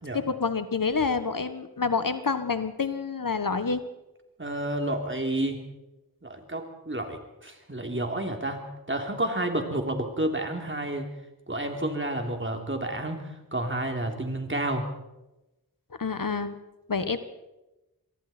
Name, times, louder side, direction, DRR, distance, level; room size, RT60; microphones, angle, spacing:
voice 1, 0.1-3.8 16.0-16.6 16.9-17.2, left 5 dB, 65° left, 10 dB, 1.5 m, -28 dB
voice 2, 4.4-5.6 6.2-11.1 11.5-14.9, right 1 dB, 35° right, 3 dB, 3.4 m, -30 dB
25.5 x 22.5 x 4.5 m, 0.98 s
wide cardioid pair, 60°, 36 cm